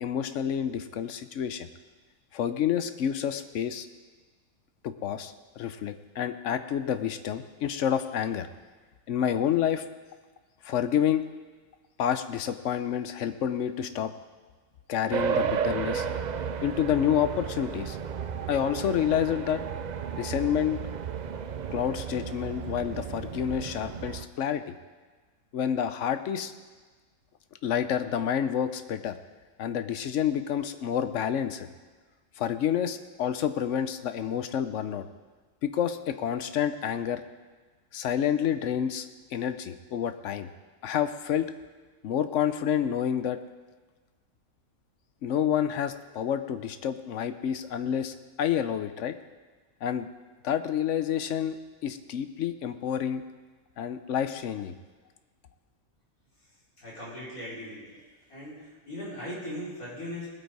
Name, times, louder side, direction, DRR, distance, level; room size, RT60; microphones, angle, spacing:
voice 1, 0.0-1.7 2.3-3.9 4.8-8.5 9.1-9.8 10.6-11.2 12.0-14.1 14.9-16.1 16.6-18.0 18.5-19.6 20.2-20.8 21.7-24.7 25.5-26.5 27.6-29.2 29.6-31.7 32.4-35.0 35.6-37.2 37.9-39.1 39.3-40.5 40.8-41.5 42.0-43.4 45.2-49.1 49.8-50.1 50.4-51.6 51.8-53.2 53.8-54.7, left 9 dB, 65° left, 11 dB, 1.0 m, -28 dB
sound 1, 15.1-24.3, right 7 dB, 65° right, 0.4 m, -33 dB
voice 2, 56.8-58.0 58.3-60.3, equal, 85° left, -8 dB, 5.2 m, -39 dB
19.5 x 8.3 x 4.7 m, 1.4 s
omnidirectional pair, 1.4 m